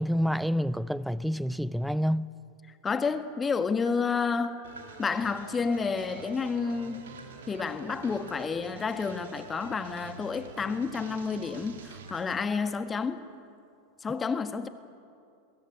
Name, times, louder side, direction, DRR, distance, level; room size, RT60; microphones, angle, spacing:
voice 1, 0.0-2.3, equal, ahead, 0.6 m, -28 dB
voice 2, 2.8-4.6 5.0-7.0 7.5-13.2 14.0-14.7, left 5 dB, 20° left, 1.5 m, -30 dB
Tap, 3.2-4.9 6.2-8.4 9.1-11.3 11.6-13.6, right 1 dB, 90° right, 2.5 m, -52 dB
sound 1, 4.6-12.4, right 5 dB, 65° right, 2.9 m, -46 dB
23.0 x 21.5 x 9.8 m
figure-of-eight pair, 85°, 0 cm